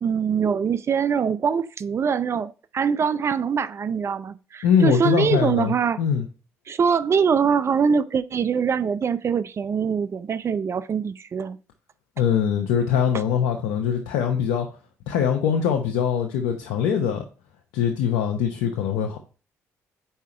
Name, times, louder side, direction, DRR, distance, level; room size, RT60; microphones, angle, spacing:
voice 1, 0.0-6.0 6.7-11.6, right 6 dB, 45° right, 0.5 m, -23 dB
voice 2, 4.6-6.3 12.2-14.7 15.1-17.2 17.7-19.2, left 8 dB, 85° left, 0.8 m, -22 dB
5.7 x 4.7 x 4.3 m
supercardioid pair, 60°, 6 cm